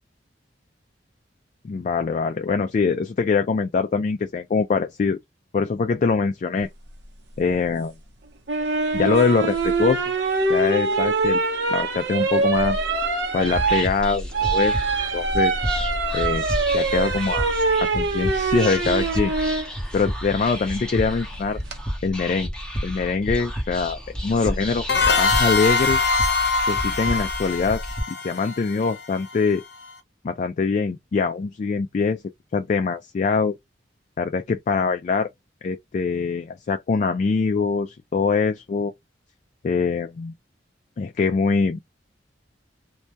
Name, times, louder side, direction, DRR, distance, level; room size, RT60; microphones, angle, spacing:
voice 1, 1.6-5.2 5.5-6.7 7.4-7.9 8.9-10.0 10.5-11.4 11.7-12.8 13.3-14.8 15.1-15.6 16.1-16.5 16.7-17.5 17.8-19.3 19.9-21.6 22.0-22.5 22.8-24.8 25.2-26.0 26.7-27.8 28.1-29.6 30.2-32.2 32.5-33.6 34.2-35.3 35.6-38.9 39.6-40.3 41.0-41.8, left 4 dB, 45° left, 0.3 m, -23 dB
sound 1, 8.5-19.7 21.3-21.8, right 3 dB, 70° right, 0.7 m, -23 dB
Whispering, 13.4-28.0, equal, 5° left, 0.6 m, -31 dB
sound 2, 24.9-29.4, left 4 dB, 65° left, 0.7 m, -23 dB
2.2 x 2.0 x 2.6 m
head